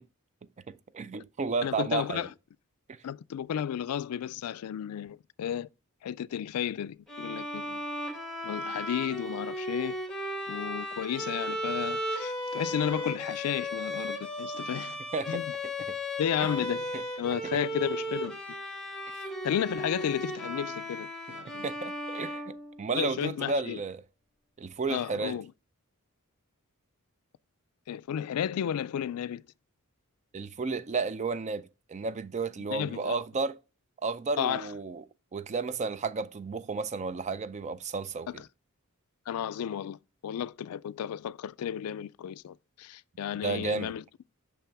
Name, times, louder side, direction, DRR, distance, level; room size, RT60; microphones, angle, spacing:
voice 1, 0.7-2.3 2.9-3.0 15.1-15.4 15.9-16.0 16.4-16.5 16.9-17.0 19.1-19.2 21.6-24.0 24.6-25.4 30.3-33.6 34.0-35.0 35.3-38.4 43.4-43.9, right 4 dB, 30° right, 0.4 m, -32 dB
voice 2, 1.6-2.3 3.0-5.7 6.0-7.8 8.4-10.0 10.5-15.0 15.3-15.5 16.2-16.8 17.2-18.4 19.4-21.7 22.9-23.8 24.9-25.5 27.9-29.4 32.7-33.2 34.4-34.7 39.3-44.0, left 9 dB, 80° left, 0.3 m, -33 dB
Bowed string instrument, 7.1-23.1, equal, ahead, 1.5 m, -36 dB
6.1 x 5.8 x 3.4 m
head